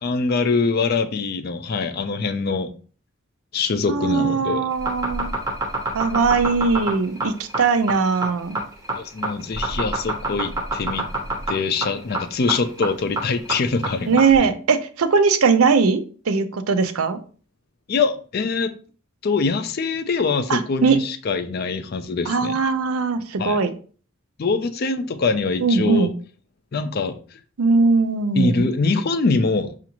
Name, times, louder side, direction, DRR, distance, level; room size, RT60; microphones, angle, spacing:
voice 1, 0.0-2.7 3.5-4.7 8.9-11.1 11.5-14.2 17.9-18.7 19.2-22.6 23.4-23.6 24.4-26.1 26.7-27.2 28.4-29.7, left 4 dB, 45° left, 0.4 m, -23 dB
voice 2, 3.9-5.3 5.9-8.6 14.1-17.2 20.5-21.0 22.3-23.7 25.6-26.1 27.6-28.6, right 4 dB, 85° right, 0.5 m, -20 dB
sound 1, 4.7-14.4, right 2 dB, 15° right, 0.6 m, -26 dB
5.9 x 2.5 x 2.9 m
head